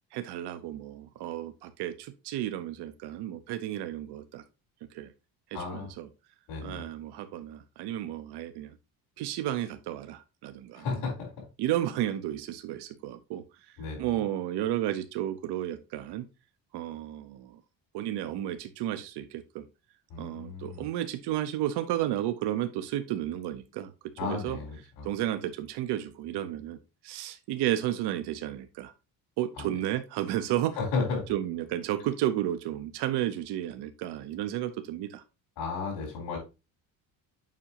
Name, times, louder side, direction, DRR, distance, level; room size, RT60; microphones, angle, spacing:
voice 1, 0.1-4.4 4.9-5.1 5.5-6.1 6.6-8.7 9.2-11.0 11.6-13.4 14.0-16.3 16.7-17.6 17.9-19.6 20.2-23.9 24.2-24.6 25.0-28.9 29.4-30.8 31.3-35.2, right 12 dB, 80° right, 9 dB, 0.8 m, -32 dB
voice 2, 5.5-5.9 6.5-6.8 10.7-11.3 13.8-14.2 20.1-20.9 24.2-25.1 29.6-29.7 30.8-31.3 35.6-36.4, left 4 dB, 80° left, -7 dB, 3.9 m, -33 dB
7.4 x 5.5 x 2.9 m, 0.28 s
cardioid pair, 155°, 40 cm